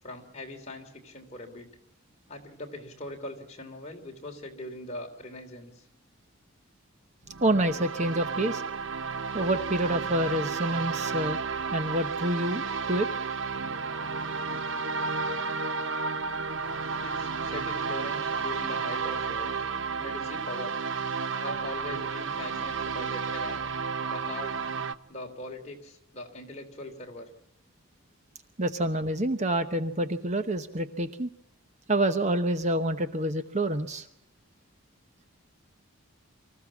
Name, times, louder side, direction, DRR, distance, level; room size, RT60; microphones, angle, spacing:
voice 1, 0.0-1.7 2.3-5.8 17.0-19.5 20.0-20.7 21.3-23.6 24.0-24.5 25.1-27.3, left 1 dB, 30° left, 1 dB, 3.2 m, -41 dB
sound 1, 7.3-24.9, right 5 dB, 60° right, 0.9 m, -32 dB
voice 2, 7.4-8.6 9.3-11.4 11.7-13.1 28.6-31.3 31.9-34.1, right 1 dB, 35° right, 9 dB, 1.0 m, -27 dB
25.0 x 14.5 x 7.2 m, 0.84 s
head